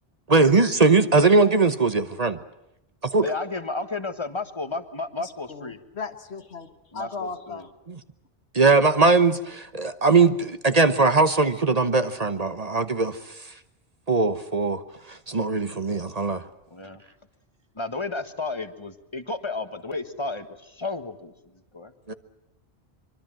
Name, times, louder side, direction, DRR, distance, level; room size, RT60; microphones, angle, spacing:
voice 1, 0.3-2.4 3.0-3.3 7.9-8.0 8.5-13.5 14.1-16.4 22.1-22.2, right 3 dB, 40° right, 10 dB, 1.1 m, -20 dB
voice 2, 3.2-5.8 6.9-7.7 16.7-17.0 17.7-21.3 21.7-21.9, left 3 dB, 25° left, 9 dB, 1.6 m, -32 dB
voice 3, 5.2-7.6, left 4 dB, 85° left, 8 dB, 1.8 m, -37 dB
24.5 x 24.0 x 7.6 m, 0.87 s
omnidirectional pair, 1.1 m